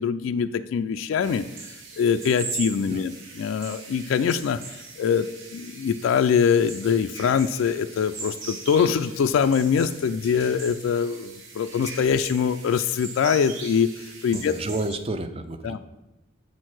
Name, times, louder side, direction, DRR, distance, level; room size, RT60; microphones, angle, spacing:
voice 1, 0.0-1.4 2.0-4.6 5.0-14.5 15.6-15.8, left 7 dB, 80° left, 9 dB, 0.3 m, -23 dB
sound 1, 1.2-14.9, right 4 dB, 70° right, 1.3 m, -40 dB
voice 2, 14.3-15.8, right 2 dB, 30° right, 9 dB, 0.4 m, -31 dB
7.2 x 4.5 x 6.1 m, 0.99 s
head